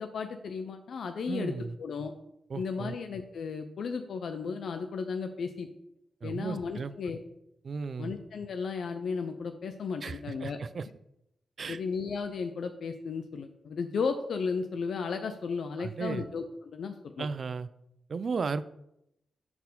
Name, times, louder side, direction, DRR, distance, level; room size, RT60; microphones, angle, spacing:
voice 1, 0.0-1.5 1.8-2.1 2.6-5.7 6.2-7.2 8.0-10.6 11.7-17.3, left 5 dB, 70° left, 7 dB, 0.4 m, -34 dB
voice 2, 1.3-1.8 2.5-2.9 6.2-6.9 7.6-8.1 10.0-10.9 11.6-11.8 15.8-16.2 17.2-17.7 18.1-18.6, right 5 dB, 60° right, 14 dB, 0.3 m, -35 dB
4.3 x 4.1 x 5.3 m, 0.81 s
supercardioid pair, 40°, 0 cm